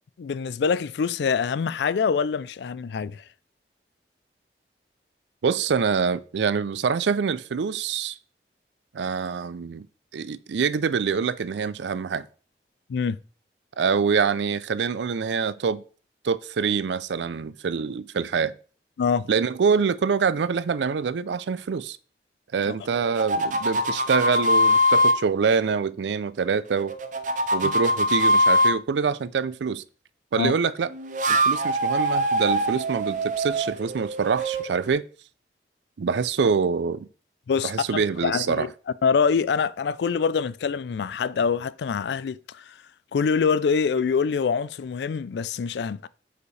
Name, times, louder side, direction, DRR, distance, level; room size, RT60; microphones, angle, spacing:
voice 1, 0.2-3.2 12.9-13.2 19.0-19.3 22.7-22.8 27.6-27.7 30.4-30.5 37.5-38.7 39.0-42.7 43.1-46.1, left 6 dB, 75° left, 0.4 m, -25 dB
voice 2, 5.4-8.2 8.9-9.9 10.1-12.3 13.8-15.8 16.2-18.5 19.3-22.0 22.5-26.9 27.5-29.8 30.3-30.9 31.3-35.0 36.0-37.1 37.6-38.7, right 5 dB, 85° right, 0.4 m, -25 dB
sound 1, 22.9-25.2 26.7-28.7 30.9-34.9, equal, 45° right, 0.6 m, -23 dB
8.2 x 5.0 x 3.2 m
head